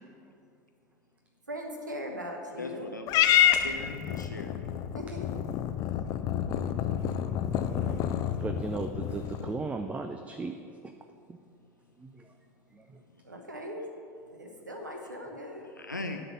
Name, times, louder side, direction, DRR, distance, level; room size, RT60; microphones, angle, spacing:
voice 1, 1.5-2.9 4.9-5.2 13.3-13.8 14.3-15.6, equal, 80° right, 3 dB, 1.1 m, -39 dB
voice 2, 2.6-4.5 15.8-16.2, left 2 dB, 90° left, 4 dB, 0.5 m, -39 dB
Purr / Meow, 3.1-9.6, left 10 dB, 40° left, 0.5 m, -28 dB
voice 3, 6.5-6.8 7.4-8.1 8.4-10.5 10.8-10.9 11.3-11.4 12.0-12.3 12.7-13.0, right 3 dB, 15° right, 6 dB, 0.4 m, -37 dB
11.0 x 4.0 x 7.4 m, 2.5 s
figure-of-eight pair, 80°, 10 cm